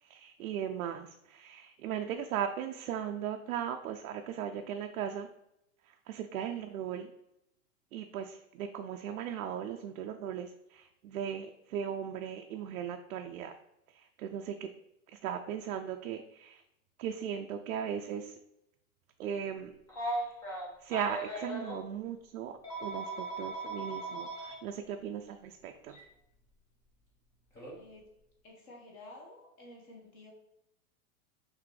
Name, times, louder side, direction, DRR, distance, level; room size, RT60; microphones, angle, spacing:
voice 1, 0.0-5.3 5.9-7.1 7.9-13.5 13.9-14.7 15.1-16.6 17.0-18.4 19.2-19.7 20.8-26.0, right 8 dB, 75° right, 5 dB, 0.5 m, -38 dB
Telephone, 19.9-21.8 22.6-24.5 25.9-26.0 27.6-27.8, right 2 dB, 10° left, 0.4 m, -38 dB
voice 2, 27.7-28.1 28.4-30.3, left 2 dB, 35° left, -1 dB, 1.2 m, -52 dB
5.9 x 2.7 x 3.2 m, 0.84 s
hypercardioid pair, 150°, 44 cm